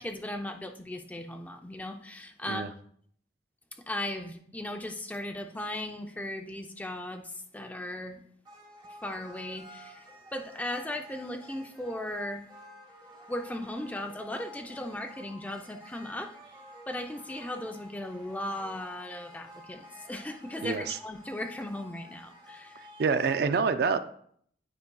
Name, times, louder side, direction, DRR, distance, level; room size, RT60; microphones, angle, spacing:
voice 1, 0.0-2.7 3.7-8.2 8.9-12.4 13.3-16.3 16.9-22.8, left 1 dB, 10° left, 5 dB, 0.4 m, -37 dB
sound 1, 8.4-23.4, equal, 20° right, 1.0 m, -51 dB
voice 2, 20.6-20.9 23.0-24.0, right 5 dB, 55° right, 10 dB, 0.3 m, -26 dB
9.5 x 5.1 x 2.3 m, 0.64 s
head